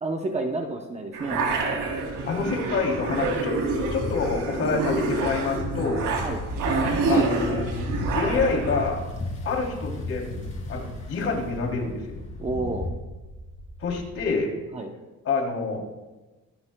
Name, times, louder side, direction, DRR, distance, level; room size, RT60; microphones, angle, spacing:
voice 1, 0.0-1.4 6.2-6.4 12.4-12.9 14.7-14.9, right 2 dB, 20° right, 3 dB, 0.8 m, -30 dB
sound 1, 1.1-8.8, right 3 dB, 85° right, 3.2 m, -27 dB
sound 2, 1.3-14.2, right 1 dB, ahead, 2.2 m, -44 dB
voice 2, 2.3-3.5 3.9-6.1 7.1-7.7 8.1-9.0 9.4-10.4 10.7-12.2 13.8-14.5 15.2-16.0, left 4 dB, 50° left, 0 dB, 3.0 m, -27 dB
sound 3, 3.1-12.9, left 2 dB, 25° left, 2.8 m, -34 dB
24.0 x 12.0 x 2.2 m, 1.2 s
cardioid pair, 170°, 31 cm